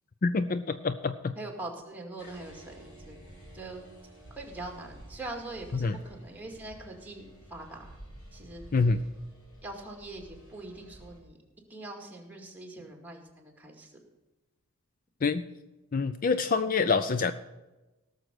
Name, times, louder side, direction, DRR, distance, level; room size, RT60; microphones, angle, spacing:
voice 1, 0.2-1.3 5.8-6.0 8.7-9.0 15.2-15.4 15.9-17.3, left 4 dB, 40° left, 11 dB, 0.4 m, -26 dB
voice 2, 1.3-3.2 3.5-3.9 4.4-7.9 8.3-8.6 9.6-11.4 11.7-13.9, right 2 dB, 10° right, 1 dB, 2.2 m, -42 dB
sound 1, 2.2-11.2, right 1 dB, 85° left, 4.8 m, -51 dB
17.5 x 6.7 x 6.2 m, 1.1 s
head